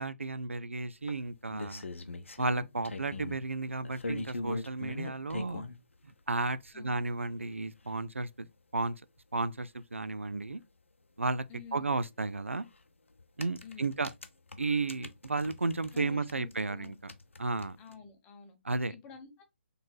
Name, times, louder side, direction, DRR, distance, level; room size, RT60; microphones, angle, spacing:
voice 1, 0.0-1.8 2.4-5.6 6.3-8.5 8.7-9.0 9.3-10.6 11.2-11.4 11.7-12.7 13.4-14.1 14.6-17.1 17.4-17.8 18.6-18.9, right 3 dB, 85° right, 0.4 m, -33 dB
sound 1, 1.1-3.4 3.9-5.8 6.7-6.8 7.2-7.3 7.5-7.6 7.9-8.0 9.9-10.0 10.3-10.4 12.3-12.5 13.2-16.0 16.3-17.9, left 2 dB, 80° left, 0.6 m, -40 dB
voice 2, 11.5-11.9 13.6-13.9 15.9-17.0 17.8-18.6 18.9-19.4, left 7 dB, 20° left, 0.9 m, -49 dB
4.4 x 3.2 x 2.3 m
figure-of-eight pair, 135°, 7 cm